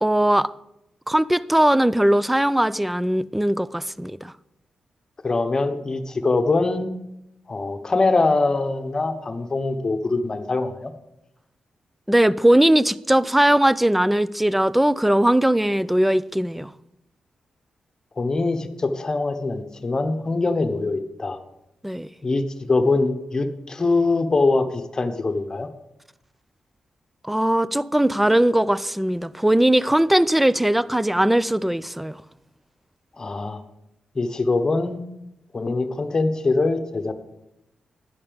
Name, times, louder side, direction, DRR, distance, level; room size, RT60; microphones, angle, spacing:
voice 1, 0.0-0.5 1.1-4.3 12.1-16.7 21.8-22.1 27.2-32.2, right 1 dB, 5° right, 0.3 m, -19 dB
voice 2, 5.2-6.9 7.5-10.9 18.2-21.4 22.2-25.7 33.2-33.6 34.1-35.0 35.5-37.1, left 3 dB, 30° left, 1.1 m, -23 dB
11.0 x 5.5 x 6.9 m
cardioid pair, 85°, 2 cm